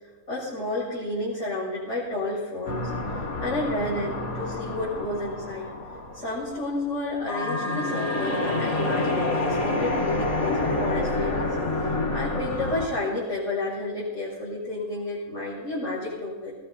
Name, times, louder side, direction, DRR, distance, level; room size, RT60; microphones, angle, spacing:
voice 1, 0.3-5.7 6.1-16.5, left 2 dB, 60° left, -11 dB, 7.4 m, -31 dB
sound 1, 2.6-7.0 7.3-12.9, left 2 dB, 85° left, 2.6 m, -28 dB
22.5 x 22.0 x 2.9 m, 1.4 s
omnidirectional pair, 1.4 m